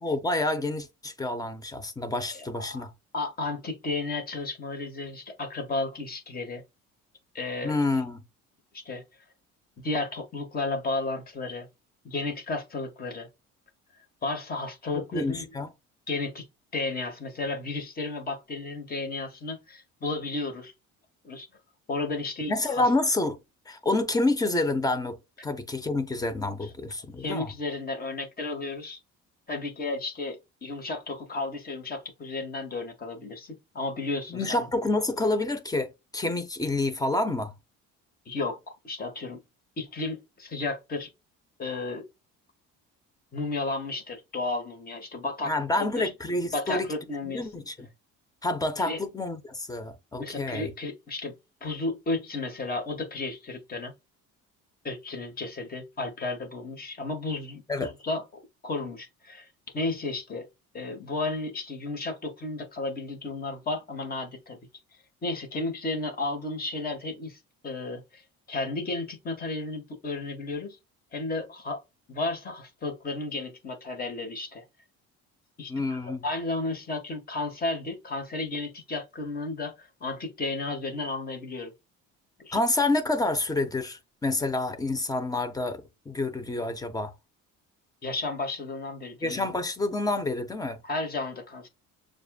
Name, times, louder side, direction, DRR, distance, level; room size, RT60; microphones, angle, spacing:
voice 1, 0.0-2.9 7.6-8.2 14.9-15.7 22.5-23.4 23.7-25.2 25.4-27.5 34.3-37.5 45.4-46.9 47.2-47.9 48.4-50.7 57.7-57.9 75.7-76.2 82.5-87.1 89.2-90.8, left 2 dB, 10° left, 0.7 m, -28 dB
voice 2, 2.3-2.9 3.1-6.6 7.3-7.8 8.7-9.0 9.8-11.7 12.0-13.3 14.2-15.5 16.1-16.5 16.7-20.7 21.2-21.5 21.9-22.9 26.6-26.7 27.2-29.0 29.5-34.7 38.2-38.6 38.8-39.4 39.8-41.1 41.6-42.0 43.3-46.1 46.5-47.5 48.8-49.0 50.2-51.3 51.6-53.9 54.8-59.5 59.7-60.5 60.7-64.6 65.2-70.8 71.1-71.8 72.1-74.6 75.6-81.7 82.4-82.6 88.0-89.4 90.8-91.7, left 2 dB, 30° left, 1.5 m, -33 dB
6.6 x 2.5 x 2.3 m
cardioid pair, 135°, 31 cm